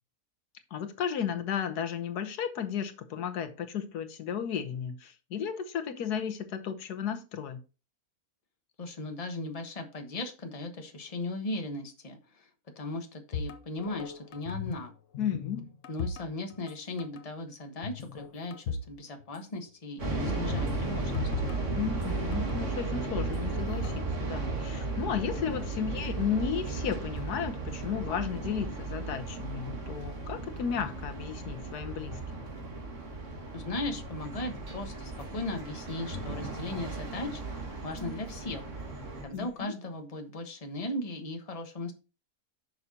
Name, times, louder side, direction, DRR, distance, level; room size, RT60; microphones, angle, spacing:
voice 1, 0.7-7.6 15.2-15.7 21.7-32.4 39.3-39.7, left 8 dB, 85° left, 9 dB, 1.5 m, -34 dB
voice 2, 8.8-12.5 12.8-14.9 15.9-21.3 33.5-37.4 37.8-38.6 39.2-41.9, left 2 dB, 25° left, 5 dB, 1.2 m, -37 dB
sound 1, 13.3-14.9 15.1-16.7 17.0-17.2 17.8-19.0 19.2-19.3 20.5-22.6 23.2-24.0, left 5 dB, 60° left, 1.1 m, -38 dB
sound 2, 20.0-39.2, right 3 dB, 50° right, 2.1 m, -35 dB
sound 3, 34.1-39.6, equal, 70° right, 3.4 m, -51 dB
10.5 x 6.6 x 2.8 m, 0.32 s
omnidirectional pair, 1.6 m